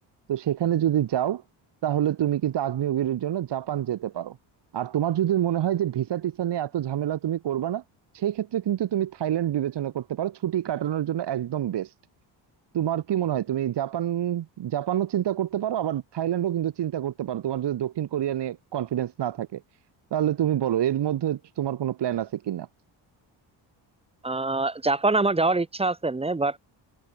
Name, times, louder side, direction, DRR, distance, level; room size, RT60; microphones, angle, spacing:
voice 1, 0.3-1.4 1.8-4.4 4.7-7.8 8.1-11.9 12.7-19.6 20.1-22.7, right 11 dB, 60° right, 1.8 m, -27 dB
voice 2, 24.2-26.6, right 3 dB, 15° right, 0.6 m, -24 dB
cardioid pair, 85°, 47 cm